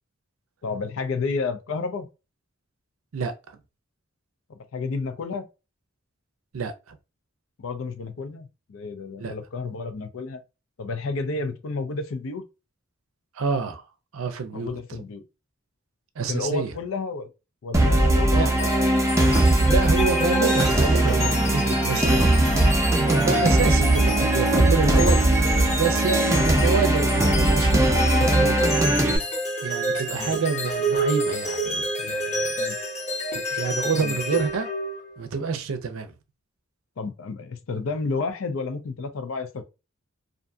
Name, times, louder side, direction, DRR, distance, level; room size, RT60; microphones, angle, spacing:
voice 1, 0.6-2.1 4.5-5.5 7.6-10.4 10.8-12.4 14.5-15.2 16.3-17.3 17.6-18.7 30.1-30.4 32.6-32.8 33.9-34.2 37.0-39.6, left 4 dB, 70° left, 0.5 m, -31 dB
voice 2, 6.5-7.0 9.2-9.3 13.4-13.8 14.1-14.8 16.2-16.7 18.3-18.9 19.5-22.6 22.9-28.9 29.6-32.6 33.3-34.7 35.2-36.1, right 5 dB, 90° right, 0.5 m, -28 dB
sound 1, 17.7-29.2, right 1 dB, 15° right, 0.5 m, -20 dB
sound 2, 18.6-35.2, equal, 35° left, 0.8 m, -28 dB
2.6 x 2.5 x 2.2 m
head